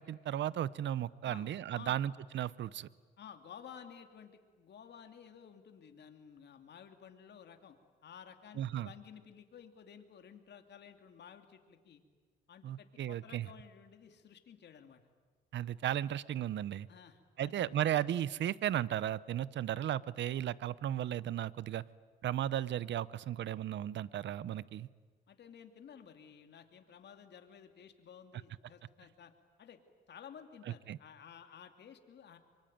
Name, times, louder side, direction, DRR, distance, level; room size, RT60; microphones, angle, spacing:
voice 1, 0.0-2.9 8.6-8.9 12.6-13.5 15.5-16.9 17.4-21.8 22.2-24.9 30.9-31.0, right 11 dB, 65° right, 19 dB, 0.8 m, -35 dB
voice 2, 3.2-7.8 8.0-12.0 12.5-15.0 16.9-17.8 25.3-29.3 29.6-29.8 30.1-32.4, left 8 dB, 60° left, 6 dB, 2.7 m, -54 dB
24.0 x 24.0 x 9.3 m, 1.5 s
cardioid pair, 90°, 20 cm